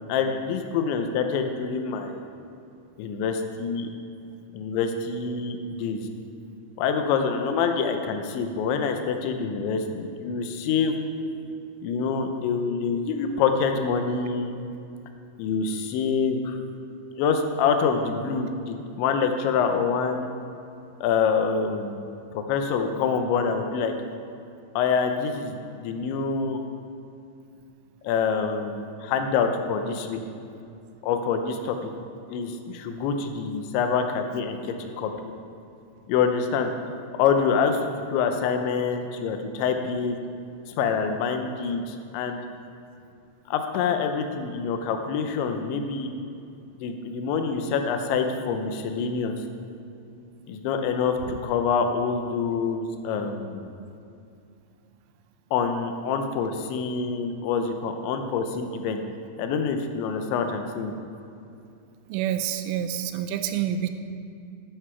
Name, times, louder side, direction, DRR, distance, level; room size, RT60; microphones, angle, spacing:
voice 1, 0.1-2.3 3.0-3.9 4.5-6.0 6.8-11.0 11.8-14.5 15.4-16.6 17.2-20.3 21.0-22.0 22.3-23.9 24.8-26.6 28.0-30.2 31.0-31.9 32.3-35.1 36.1-36.7 37.2-37.8 38.1-40.2 40.8-42.4 43.5-46.1 46.8-49.3 50.5-53.7 55.5-59.0 59.4-60.9, left 5 dB, 80° left, 6 dB, 3.0 m, -26 dB
voice 2, 62.1-63.9, right 10 dB, 85° right, 8 dB, 3.2 m, -27 dB
12.5 x 11.5 x 4.6 m, 2.5 s
omnidirectional pair, 5.6 m